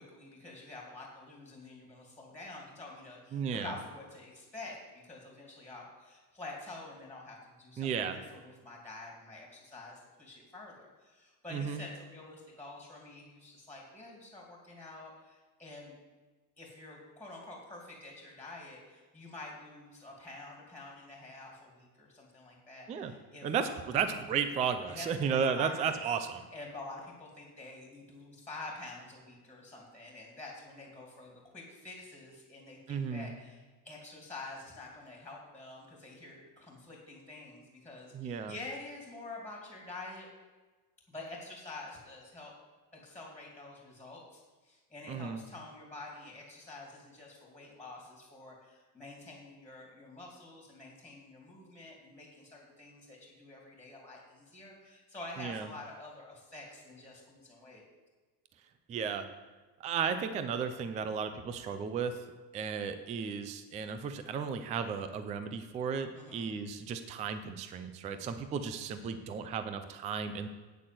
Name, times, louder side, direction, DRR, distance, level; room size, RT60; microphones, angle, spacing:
voice 1, 0.0-16.0 16.6-23.8 24.9-26.0 26.5-40.3 41.1-42.5 42.9-57.8 66.1-66.5, left 2 dB, 5° left, -1 dB, 2.5 m, -48 dB
voice 2, 3.3-3.7 7.8-8.2 11.5-11.8 22.9-23.1 23.4-26.4 32.9-33.3 38.1-38.5 45.1-45.4 55.4-55.7 58.9-59.3 59.8-62.2 62.5-70.5, right 6 dB, 15° right, 9 dB, 0.3 m, -34 dB
8.8 x 8.3 x 7.7 m, 1.3 s
cardioid pair, 160°, 49 cm